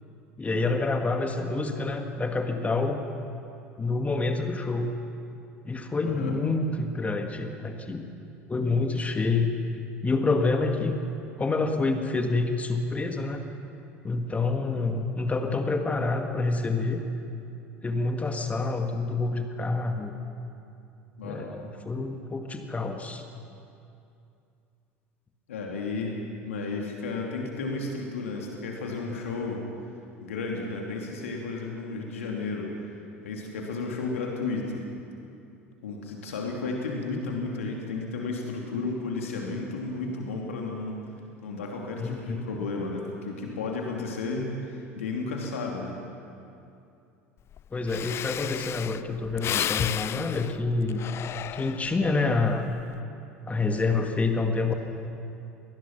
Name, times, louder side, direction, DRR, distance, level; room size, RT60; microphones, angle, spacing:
voice 1, 0.4-3.0 3.8-5.0 5.6-8.0 8.5-9.5 10.0-11.0 11.4-13.4 14.0-17.0 17.8-20.1 21.2-23.2 42.0-42.4 47.7-51.0 51.5-52.7 53.5-54.7, left 3 dB, 20° left, 4 dB, 2.0 m, -27 dB
voice 2, 6.0-6.4 21.2-21.5 25.5-29.7 30.2-32.7 33.2-34.9 35.8-41.0 41.4-45.9, left 3 dB, 75° left, 0 dB, 2.6 m, -33 dB
Breathing, 47.5-47.6 47.9-52.1 52.6-53.0, left 11 dB, 35° left, 0.4 m, -33 dB
24.5 x 19.0 x 6.0 m, 2.6 s
figure-of-eight pair, 70°, 7 cm